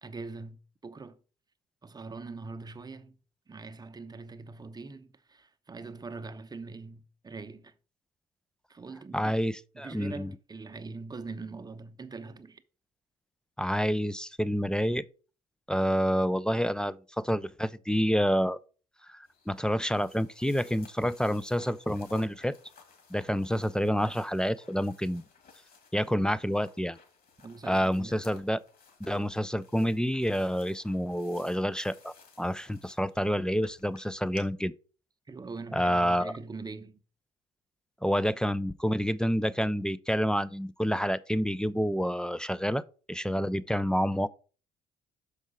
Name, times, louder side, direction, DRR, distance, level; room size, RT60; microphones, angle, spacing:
voice 1, 0.0-1.2 1.8-3.1 3.5-7.7 8.7-9.3 9.7-12.6 27.4-28.2 35.3-37.0, right 3 dB, 20° right, 0.8 m, -42 dB
voice 2, 9.1-10.3 13.6-15.0 15.7-18.6 19.1-22.6 23.1-25.2 25.9-27.0 27.6-28.6 29.0-34.7 35.7-36.3 38.0-44.3, equal, 5° left, 0.4 m, -28 dB
sound 1, 19.2-34.4, left 5 dB, 45° left, 2.2 m, -57 dB
6.3 x 4.9 x 5.0 m
figure-of-eight pair, 50°, 20 cm